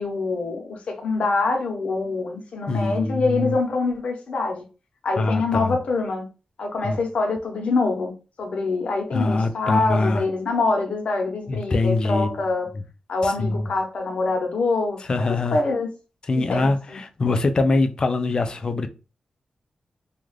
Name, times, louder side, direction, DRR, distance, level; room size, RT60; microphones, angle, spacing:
voice 1, 0.0-4.6 5.0-6.2 6.6-8.1 8.4-12.7 13.1-15.0 15.3-15.9 16.3-17.0, left 3 dB, 70° left, 0.8 m, -25 dB
voice 2, 2.7-3.6 5.2-5.8 6.8-7.0 9.1-10.2 11.5-12.4 13.2-13.7 15.1-15.6 16.3-18.9, left 3 dB, 40° left, 0.3 m, -23 dB
2.4 x 2.3 x 3.2 m
wide cardioid pair, 150°, 2 cm